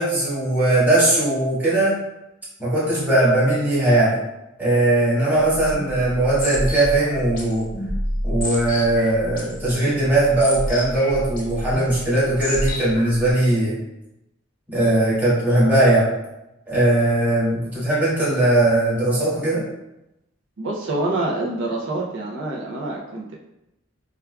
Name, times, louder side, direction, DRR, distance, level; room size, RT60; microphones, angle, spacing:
voice 1, 0.0-2.0 2.6-4.2 4.6-7.7 8.2-13.8 14.7-16.1 16.7-19.6, right 1 dB, 10° right, -10 dB, 1.3 m, -19 dB
sound 1, 5.4-13.3, left 1 dB, 40° left, 0.7 m, -29 dB
voice 2, 20.6-23.4, right 2 dB, 65° right, -3 dB, 0.5 m, -26 dB
4.7 x 2.3 x 2.2 m, 0.91 s
head